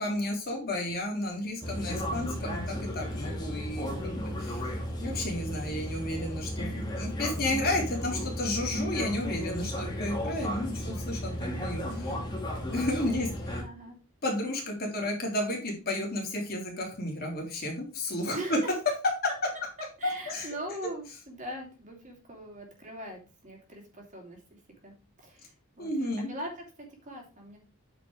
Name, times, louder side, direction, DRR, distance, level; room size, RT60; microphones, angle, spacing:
voice 1, 0.0-4.1 4.4-4.6 5.0-12.2 12.7-13.6 14.2-18.6 20.0-20.5 25.8-26.3, left 1 dB, 45° left, -1 dB, 3.2 m, -32 dB
sound 1, 1.6-13.6, equal, 20° left, 2.1 m, -34 dB
voice 2, 3.8-4.2 12.0-12.3 13.6-14.0 14.8-14.9 15.6-15.8 18.3-18.6 20.0-27.6, right 1 dB, 35° right, 1 dB, 2.8 m, -42 dB
8.9 x 5.2 x 4.8 m, 0.34 s
head